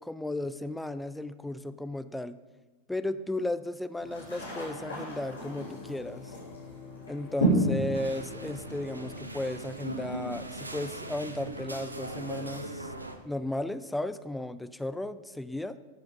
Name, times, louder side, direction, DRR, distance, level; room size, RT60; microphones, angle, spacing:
voice 1, 0.0-2.4 2.9-6.3 7.1-12.9 13.2-15.8, left 1 dB, 5° left, 13 dB, 0.6 m, -35 dB
sound 1, 4.0-9.2, right 1 dB, 75° left, 4.6 m, -32 dB
sound 2, 7.9-13.2, right 2 dB, 80° right, 1.0 m, -39 dB
13.5 x 7.7 x 5.6 m, 1.2 s
figure-of-eight pair, 90°, 0 cm